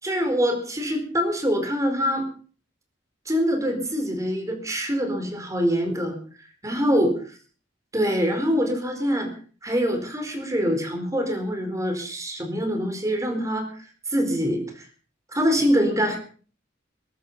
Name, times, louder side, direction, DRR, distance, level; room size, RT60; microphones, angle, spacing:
voice 1, 0.0-2.3 3.3-6.2 6.6-7.2 7.9-9.3 9.6-13.7 14.1-14.9 15.3-16.2, equal, 15° right, 4 dB, 4.4 m, -24 dB
22.5 x 11.5 x 5.6 m, 0.42 s
head